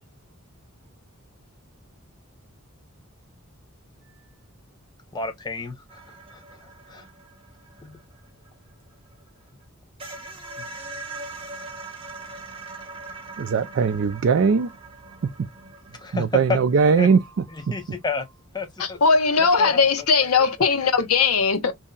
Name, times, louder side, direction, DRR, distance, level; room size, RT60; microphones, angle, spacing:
voice 1, 5.1-7.1 7.8-8.0 10.6-10.7 15.9-16.6 17.0-17.1 17.5-18.3 18.5-19.0 19.4-20.7 21.2-21.3, left 4 dB, 20° left, 0.6 m, -32 dB
sound 1, 5.9-9.3 9.6-9.7 10.0-16.7, right 3 dB, 25° right, 0.8 m, -41 dB
voice 2, 13.4-14.7 15.2-15.3 16.1-17.2, right 5 dB, 55° right, 0.3 m, -20 dB
voice 3, 18.8-21.7, left 5 dB, 85° left, 0.8 m, -19 dB
2.7 x 2.1 x 3.7 m
head